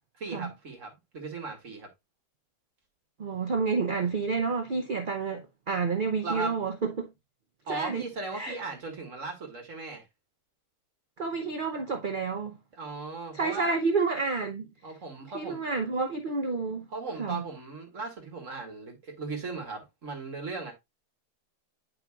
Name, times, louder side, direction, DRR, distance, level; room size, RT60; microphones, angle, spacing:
voice 1, 0.2-1.9 6.2-6.6 7.7-10.0 12.7-13.8 14.8-15.6 16.9-20.7, right 3 dB, 50° right, 1.9 m, -37 dB
voice 2, 3.2-7.1 7.7-8.1 8.3-8.6 11.2-12.6 13.3-14.7 15.3-16.9 17.2-17.4, right 4 dB, 65° right, 0.5 m, -29 dB
9.1 x 5.3 x 2.3 m
omnidirectional pair, 1.8 m